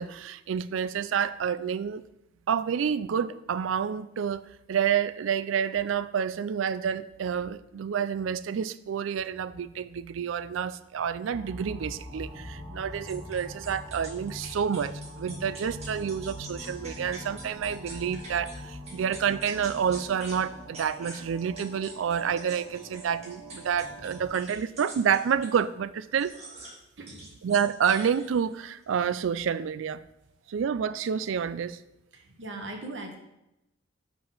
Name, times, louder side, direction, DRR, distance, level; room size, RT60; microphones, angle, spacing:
voice 1, 0.0-2.0 2.5-26.3 27.4-30.0 30.5-31.8, right 7 dB, 90° right, 14 dB, 0.4 m, -29 dB
sound 1, 11.3-24.3, equal, 10° right, 2.7 m, -43 dB
sound 2, 13.1-18.6 18.9-20.4 20.7-25.6 26.2-26.8 27.1-28.5, right 2 dB, 35° right, 1.8 m, -45 dB
voice 2, 27.0-27.3 32.1-33.2, right 2 dB, 70° right, 3 dB, 1.2 m, -40 dB
5.8 x 4.9 x 5.4 m, 0.87 s
head